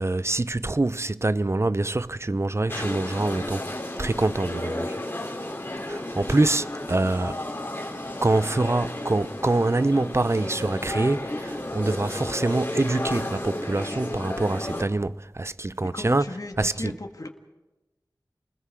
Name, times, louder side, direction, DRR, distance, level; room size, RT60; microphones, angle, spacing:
voice 1, 0.0-3.7 4.0-5.0 5.8-7.4 8.2-17.0, right 2 dB, 35° right, 0.6 m, -25 dB
sound 1, 2.7-14.8, left 1 dB, 30° left, 3.6 m, -33 dB
voice 2, 15.8-17.3, left 2 dB, 50° left, 1.9 m, -36 dB
29.5 x 20.5 x 4.9 m
wide cardioid pair, 45°, 7 cm